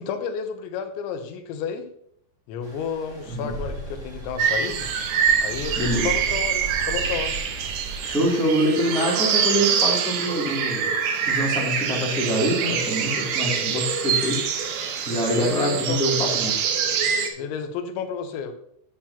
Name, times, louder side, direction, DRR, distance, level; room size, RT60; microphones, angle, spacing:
voice 1, 0.0-1.8 2.5-4.9 5.4-7.4 15.4-16.0 17.4-18.5, left 6 dB, 85° left, 7 dB, 3.2 m, -31 dB
Stream, 2.6-8.3, right 2 dB, 40° right, 1.1 m, -36 dB
sound 1, 4.4-17.3, right 7 dB, 75° right, 3.1 m, -25 dB
voice 2, 5.8-6.1 8.0-10.9 11.2-14.4 15.0-16.6, equal, ahead, -5 dB, 1.4 m, -25 dB
12.0 x 7.4 x 2.9 m, 0.69 s
omnidirectional pair, 5.2 m